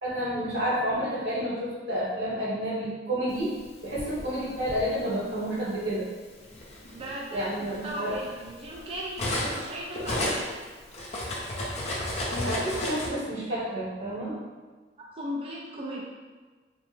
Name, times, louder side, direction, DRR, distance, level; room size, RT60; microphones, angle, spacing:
voice 1, 0.0-3.5 3.8-6.1 7.3-8.1 12.3-14.4, equal, 90° right, -8 dB, 1.2 m, -30 dB
Cutlery silverware, 3.6-4.8 5.8-6.0 6.4-9.7 9.9-13.1, left 1 dB, 40° left, 0.5 m, -32 dB
voice 2, 6.9-10.6 15.0-16.0, equal, 30° right, -4 dB, 0.3 m, -37 dB
3.2 x 2.0 x 3.1 m, 1.4 s
head